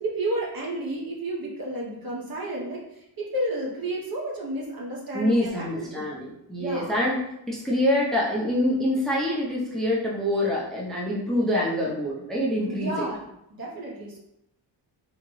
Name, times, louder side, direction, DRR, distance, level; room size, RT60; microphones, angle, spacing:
voice 1, 0.0-6.2 6.6-6.9 12.6-13.2 13.5-14.2, right 1 dB, 50° right, -3 dB, 1.0 m, -31 dB
voice 2, 5.1-13.1, left 1 dB, ahead, -4 dB, 0.6 m, -25 dB
3.7 x 2.1 x 3.1 m, 0.80 s
cardioid pair, 100°, 46 cm